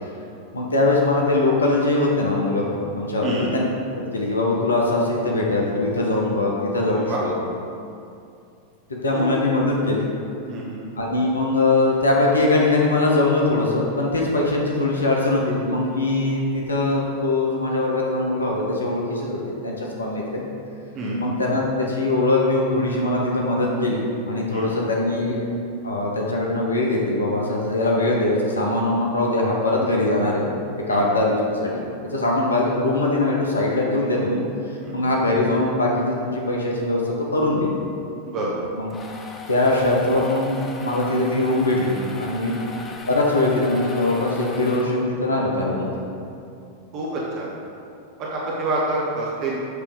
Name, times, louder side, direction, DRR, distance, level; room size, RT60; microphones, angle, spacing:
voice 1, 0.5-3.6 3.9-7.3 9.0-10.1 11.0-20.4 21.1-25.4 25.8-30.5 30.8-34.4 34.9-37.7 38.7-38.9 39.5-42.6 43.1-45.9, left 2 dB, 75° left, -2 dB, 0.9 m, -22 dB
voice 2, 10.5-10.8 20.9-21.2 24.5-24.6 30.9-31.0 34.8-35.0 38.2-38.5 42.4-42.6 46.9-47.5 48.2-49.6, right 2 dB, 40° right, -4 dB, 1.1 m, -27 dB
sound 1, 38.6-45.3, left 2 dB, 20° left, 0.6 m, -38 dB
8.0 x 3.3 x 5.1 m, 2.5 s
figure-of-eight pair, 90°, 0 cm